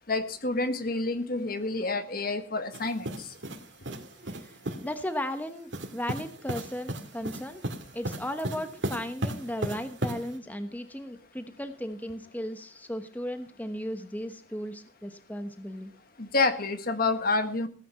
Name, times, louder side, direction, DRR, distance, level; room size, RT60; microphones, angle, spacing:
voice 1, 0.1-3.1 16.2-17.7, left 3 dB, 50° left, 9 dB, 1.5 m, -28 dB
sound 1, 2.7-4.9 5.7-10.4, right 1 dB, 70° right, 2.4 m, -36 dB
voice 2, 4.3-7.7 7.9-15.9, equal, 10° left, 8 dB, 1.0 m, -36 dB
17.0 x 9.4 x 5.7 m, 0.40 s
head